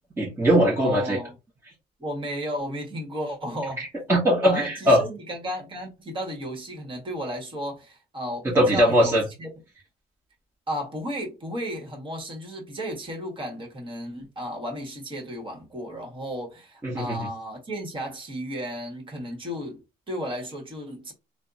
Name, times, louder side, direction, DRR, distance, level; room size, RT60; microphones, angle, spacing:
voice 1, 0.2-1.2 3.8-5.0 8.4-9.2 16.8-17.3, equal, 15° right, 1.1 m, -21 dB
voice 2, 0.8-1.3 2.0-3.9 4.4-9.5 10.7-21.1, equal, 30° right, 1.4 m, -34 dB
3.4 x 2.2 x 2.5 m
cardioid pair, 110°, 17 cm